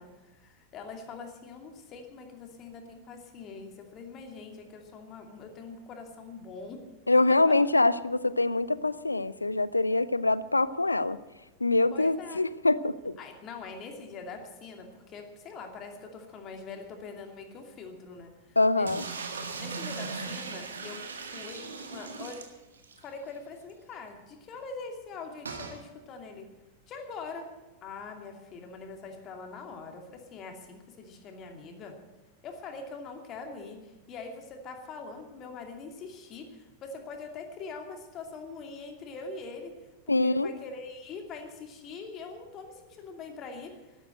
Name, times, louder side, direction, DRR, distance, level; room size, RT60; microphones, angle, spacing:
voice 1, 0.0-6.8 7.5-7.6 11.9-12.4 13.2-19.0 19.6-21.0 21.2-22.4 23.0-26.5 26.9-27.5 27.8-32.0 32.4-39.7 40.1-44.1, left 4 dB, 30° left, 4 dB, 2.6 m, -43 dB
voice 2, 7.1-11.2 11.6-13.2 18.6-19.0 40.1-40.5, left 2 dB, 80° left, 18 dB, 0.5 m, -24 dB
sound 1, 18.9-23.0 23.4-23.5 23.7-23.8 25.5-25.8, right 4 dB, 70° right, 1.8 m, -38 dB
12.5 x 12.5 x 7.7 m, 1.2 s
figure-of-eight pair, 90°, 0 cm